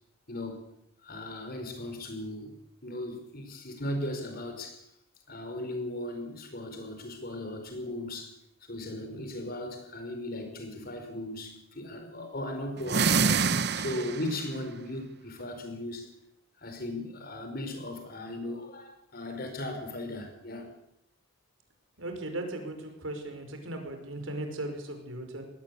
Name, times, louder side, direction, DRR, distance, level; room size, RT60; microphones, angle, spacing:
voice 1, 0.3-0.6 1.0-2.5 2.8-4.8 5.3-8.4 8.6-13.4 13.8-16.1 16.6-20.7, left 1 dB, 50° left, 6 dB, 4.9 m, -37 dB
sound 1, 12.8-14.4, right 5 dB, 55° right, 0.9 m, -26 dB
voice 2, 22.0-25.4, right 1 dB, 80° right, 5 dB, 5.6 m, -37 dB
21.0 x 18.0 x 8.5 m, 0.77 s
head